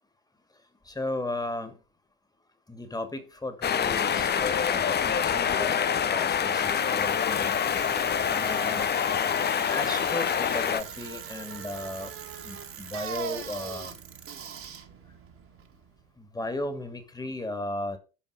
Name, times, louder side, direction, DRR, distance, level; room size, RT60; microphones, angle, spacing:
voice 1, 0.8-1.8 2.7-7.5 8.3-8.9 9.7-12.1 12.4-14.0 16.2-18.0, left 2 dB, 10° left, 2.3 m, -35 dB
sound 1, 3.6-10.8, left 8 dB, 25° left, 0.8 m, -26 dB
Bicycle, 6.0-16.1, right 7 dB, 35° right, 2.0 m, -41 dB
11.5 x 5.3 x 5.4 m
hypercardioid pair, 70°, 38 cm